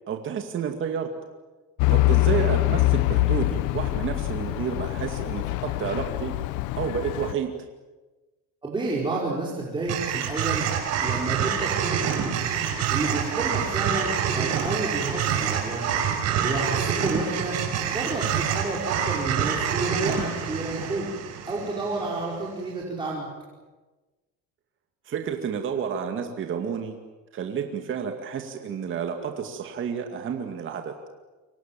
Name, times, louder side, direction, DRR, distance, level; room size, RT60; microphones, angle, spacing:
voice 1, 0.1-1.1 1.9-6.3 6.8-7.5 25.1-27.0 27.3-30.9, right 7 dB, 40° right, 4 dB, 2.3 m, -30 dB
Truck / Idling, 1.8-7.3, left 18 dB, 80° left, 1.1 m, -24 dB
voice 2, 8.6-10.7 11.0-12.4 12.6-15.8 16.4-17.6 17.9-21.1 21.4-23.3, right 2 dB, 15° right, -4 dB, 5.2 m, -30 dB
sound 1, 9.9-22.2, right 8 dB, 55° right, 5.3 m, -27 dB
29.0 x 25.0 x 7.6 m, 1.2 s
cardioid pair, 145°, 30 cm